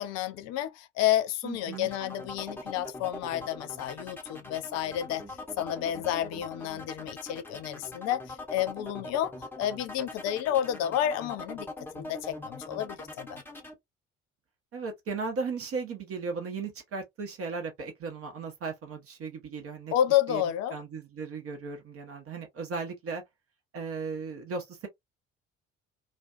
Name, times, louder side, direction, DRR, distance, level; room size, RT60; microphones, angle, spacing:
voice 1, 0.0-5.2 5.6-11.7 11.9-13.4 19.9-20.8, left 11 dB, 50° left, 0.4 m, -30 dB
voice 2, 1.4-1.9 14.7-19.9 20.3-20.4 20.7-23.2 23.7-24.9, right 4 dB, 40° right, 0.7 m, -36 dB
sound 1, 1.7-13.7, left 2 dB, 5° left, 0.7 m, -42 dB
2.5 x 2.1 x 2.4 m
figure-of-eight pair, 55°, 35 cm